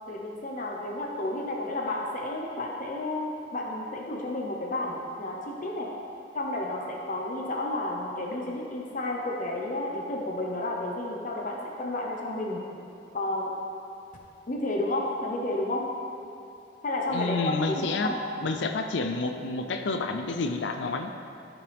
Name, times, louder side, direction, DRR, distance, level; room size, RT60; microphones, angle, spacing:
voice 1, 0.1-5.9 6.3-12.6 13.1-13.5 14.5-15.9 16.8-18.2, left 1 dB, 45° left, -1 dB, 0.9 m, -31 dB
voice 2, 17.1-18.1 18.4-21.1, left 3 dB, 75° left, 6 dB, 0.5 m, -29 dB
14.5 x 5.9 x 3.5 m, 2.6 s
head